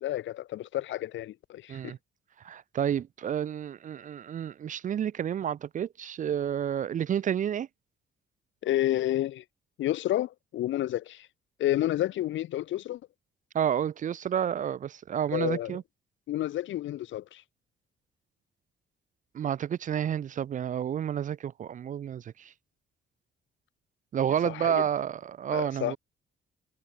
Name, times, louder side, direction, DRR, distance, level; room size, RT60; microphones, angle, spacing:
voice 1, 0.0-1.9 8.6-9.4 9.8-11.3 11.6-13.0 15.3-15.8 16.3-17.4 24.4-24.8 25.5-26.0, left 13 dB, 75° left, 0.8 m, -30 dB
voice 2, 2.4-7.7 13.5-15.8 19.3-22.5 24.1-26.0, right 9 dB, 40° right, 0.4 m, -30 dB
cardioid pair, 90°, 20 cm